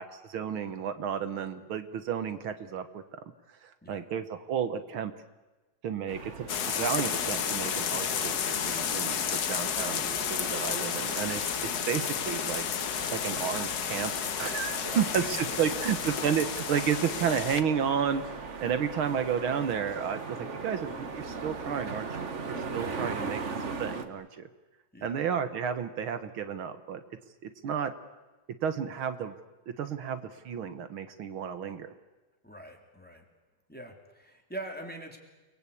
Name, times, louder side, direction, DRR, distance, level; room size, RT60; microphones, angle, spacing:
voice 1, 0.0-3.2 3.6-5.1 5.8-11.4 11.9-12.6 13.1-14.1 14.4-18.2 18.6-23.4 23.8-24.5 25.0-27.0 27.4-27.9 28.6-29.3 29.8-30.2 30.5-31.9, right 7 dB, 75° right, 10 dB, 2.0 m, -32 dB
sound 1, 6.1-24.0, right 4 dB, 40° right, 1.6 m, -40 dB
sound 2, 6.5-17.6, left 8 dB, 55° left, 1.5 m, -32 dB
voice 2, 14.9-15.9 22.7-23.4 24.9-25.2 32.4-33.2 33.7-35.2, right 1 dB, 5° left, 3 dB, 3.2 m, -44 dB
29.5 x 21.0 x 8.5 m, 1.2 s
omnidirectional pair, 2.3 m